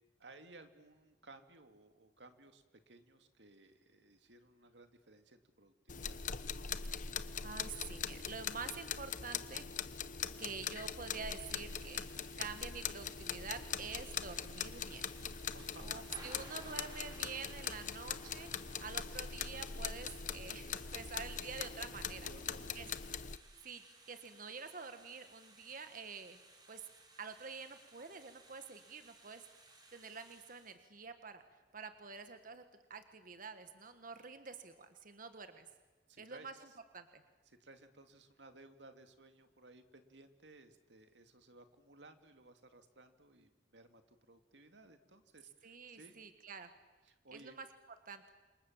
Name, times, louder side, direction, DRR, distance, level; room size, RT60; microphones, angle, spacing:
voice 1, 0.2-6.2 15.5-16.4 22.2-22.9 36.1-36.7 37.5-46.2 47.0-47.6, right 2 dB, 85° right, 8 dB, 2.3 m, -59 dB
sound 1, 5.9-23.4, left 7 dB, 45° left, 0.9 m, -42 dB
voice 2, 7.1-9.9 10.4-12.1 12.4-15.0 15.8-18.5 18.8-22.3 22.7-22.9 23.6-26.4 26.7-26.8 27.2-29.4 29.9-31.4 31.7-32.6 32.9-35.7 36.2-36.5 36.9-37.2 45.6-46.7 47.3-47.7 48.0-48.2, right 5 dB, 50° right, 9 dB, 1.6 m, -47 dB
Thunder / Rain, 11.3-30.7, right 2 dB, 25° right, 4.1 m, -61 dB
29.5 x 27.0 x 7.3 m, 1.2 s
head